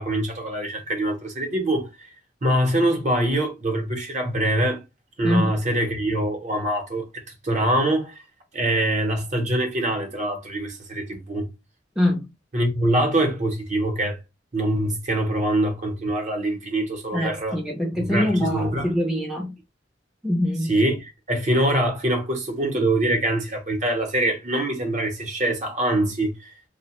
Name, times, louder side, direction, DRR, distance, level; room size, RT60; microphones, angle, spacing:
voice 1, 0.0-2.1 2.4-4.8 5.2-8.2 8.5-11.5 12.5-14.2 14.5-17.6 18.0-18.9 20.7-26.5, right 1 dB, 40° right, 0.8 m, -24 dB
voice 2, 5.2-5.5 12.0-12.3 17.1-19.5 20.2-20.7, left 1 dB, 5° right, 0.5 m, -24 dB
2.8 x 2.1 x 2.9 m
head